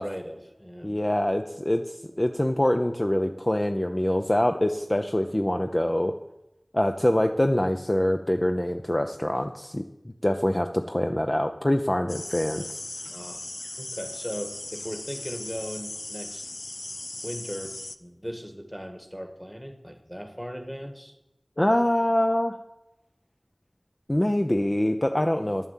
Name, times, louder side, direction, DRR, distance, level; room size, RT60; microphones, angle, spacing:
voice 1, 0.0-0.9 13.1-13.5 13.8-16.5 17.2-21.2, equal, ahead, 6 dB, 1.6 m, -38 dB
voice 2, 0.8-6.1 6.7-9.8 10.2-12.8 21.6-22.5 24.1-25.7, left 1 dB, 30° left, 5 dB, 0.6 m, -24 dB
sound 1, 12.1-18.0, left 2 dB, 75° left, 0.5 m, -38 dB
11.0 x 7.4 x 7.4 m, 0.90 s
wide cardioid pair, 40°, 0 cm